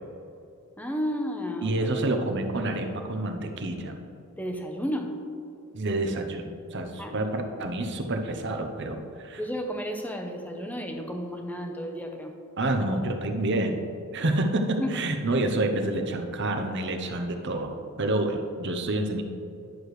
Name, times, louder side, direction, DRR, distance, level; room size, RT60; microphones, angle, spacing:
voice 1, 0.8-1.9 4.4-5.1 7.0-7.2 9.4-12.3 14.8-15.0, equal, 5° left, 3 dB, 0.7 m, -32 dB
voice 2, 1.6-4.0 5.7-9.4 12.6-13.9 14.1-17.7 18.0-19.2, right 2 dB, 55° right, 5 dB, 0.8 m, -28 dB
11.0 x 6.6 x 3.2 m, 2.6 s
head